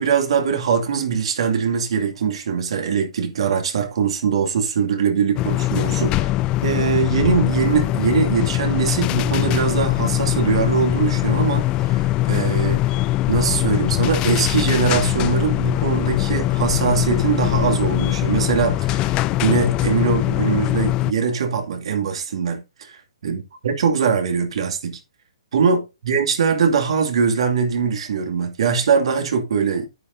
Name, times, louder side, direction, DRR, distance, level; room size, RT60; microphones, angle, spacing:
voice 1, 0.0-6.3 6.6-13.0 13.3-19.1 19.4-25.0 25.5-29.9, right 6 dB, 65° right, 2.5 m, -22 dB
sound 1, 5.4-21.1, left 16 dB, 25° left, 0.4 m, -21 dB
9.3 x 9.2 x 2.7 m
hypercardioid pair, 130°, 3 cm